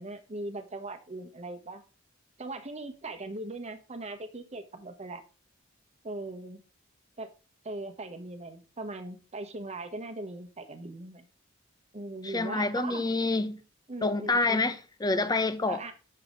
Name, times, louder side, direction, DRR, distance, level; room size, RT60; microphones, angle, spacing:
voice 1, 0.0-1.8 2.4-5.2 6.0-6.6 7.2-7.3 7.6-11.3 11.9-13.0 13.9-14.7 15.7-15.9, right 2 dB, 35° right, 1.1 m, -39 dB
voice 2, 12.2-13.6 14.0-15.8, left 3 dB, 20° left, 0.7 m, -27 dB
8.1 x 6.7 x 3.8 m
head